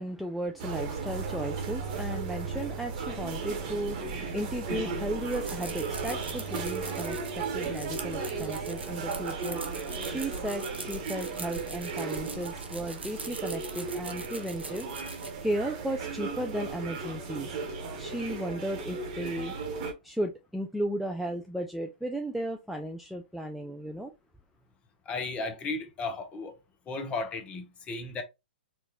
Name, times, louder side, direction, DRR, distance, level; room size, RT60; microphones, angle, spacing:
voice 1, 0.0-14.9 15.1-17.6 18.0-19.5 20.0-24.1, right 1 dB, ahead, 0.3 m, -35 dB
sound 1, 0.6-19.9, right 4 dB, 45° right, 1.1 m, -35 dB
sound 2, 5.2-15.3, right 3 dB, 90° right, 0.8 m, -43 dB
voice 2, 25.1-26.6 26.9-28.2, left 3 dB, 20° left, 0.7 m, -34 dB
4.5 x 2.4 x 2.8 m
figure-of-eight pair, 120°, 6 cm